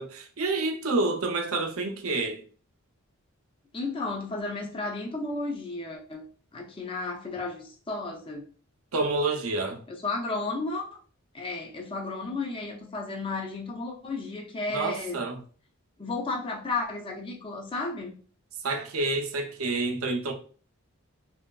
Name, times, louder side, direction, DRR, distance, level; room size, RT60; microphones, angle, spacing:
voice 1, 0.0-2.4 8.9-9.8 14.7-15.4 18.6-20.3, right 3 dB, 75° right, 0.5 m, -28 dB
voice 2, 3.7-6.2 6.5-8.4 10.0-10.9 11.3-15.2 16.0-18.2, left 3 dB, 25° left, 0.4 m, -33 dB
2.9 x 2.7 x 2.2 m
head